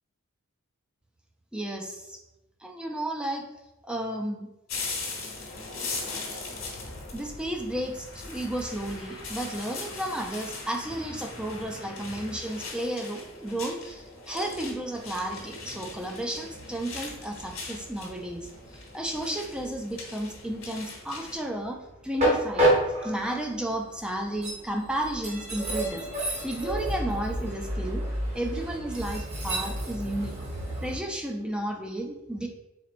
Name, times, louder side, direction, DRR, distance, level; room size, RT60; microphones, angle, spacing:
voice 1, 1.5-2.2 2.6-3.4 3.8-4.5 7.1-26.1 26.4-28.0 28.3-30.3 30.8-32.5, right 1 dB, 5° right, 2 dB, 0.3 m, -33 dB
sound 1, 4.7-21.4, left 3 dB, 65° left, 1.1 m, -40 dB
Train, 14.2-31.0, right 1 dB, 30° right, 0.9 m, -31 dB
4.3 x 4.0 x 2.5 m, 0.95 s
head